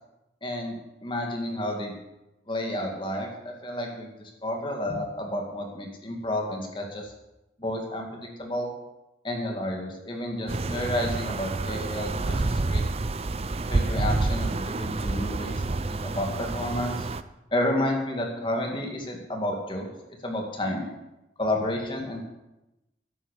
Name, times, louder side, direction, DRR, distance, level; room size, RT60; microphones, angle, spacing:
voice 1, 0.4-1.9 2.5-7.1 7.6-8.7 9.2-12.8 13.7-15.6 15.9-17.1 17.5-19.9 20.2-20.9 21.4-22.2, left 1 dB, 25° left, 1 dB, 2.3 m, -31 dB
sound 1, 10.5-17.2, right 2 dB, 35° right, 0.5 m, -28 dB
11.0 x 10.0 x 6.6 m, 0.96 s
head